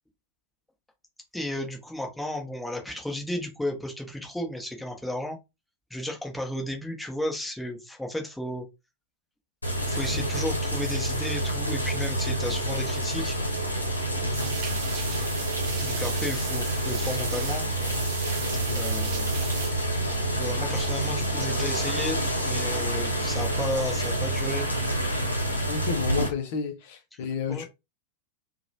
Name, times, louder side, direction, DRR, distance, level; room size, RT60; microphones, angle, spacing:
voice 1, 1.3-5.4 5.9-8.6 9.9-13.3 15.8-17.6 18.7-20.1 20.4-24.7 27.5-27.6, left 1 dB, 5° left, 0.8 m, -33 dB
sound 1, 9.6-26.3, right 1 dB, 85° left, 0.7 m, -28 dB
voice 2, 14.2-14.6 18.4-18.9 25.6-27.6, left 6 dB, 50° left, 0.5 m, -32 dB
sound 2, 14.3-19.7, right 8 dB, 45° right, 0.5 m, -37 dB
2.8 x 2.1 x 2.7 m
figure-of-eight pair, 90°, 0 cm